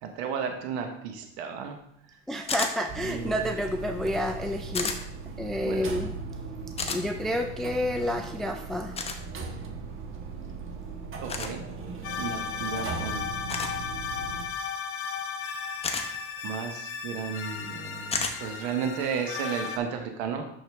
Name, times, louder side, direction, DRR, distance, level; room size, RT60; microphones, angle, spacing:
voice 1, 0.0-1.8 3.0-3.4 5.6-5.8 11.2-11.6 12.2-13.2 16.4-20.4, right 6 dB, 80° right, 4 dB, 1.1 m, -33 dB
voice 2, 2.3-5.0 5.4-6.2 6.9-9.0, left 1 dB, ahead, 5 dB, 0.3 m, -29 dB
sound 1, 2.5-2.7 4.7-5.0 6.8-7.0 9.0-9.2 11.3-11.5 13.5-13.8 15.8-16.1 18.1-18.4, left 4 dB, 20° left, 0.9 m, -30 dB
sound 2, 2.9-14.5, right 4 dB, 40° right, 1.3 m, -38 dB
sound 3, 12.0-19.8, left 6 dB, 40° left, 1.0 m, -35 dB
6.4 x 6.4 x 3.5 m, 0.74 s
supercardioid pair, 115°, 33 cm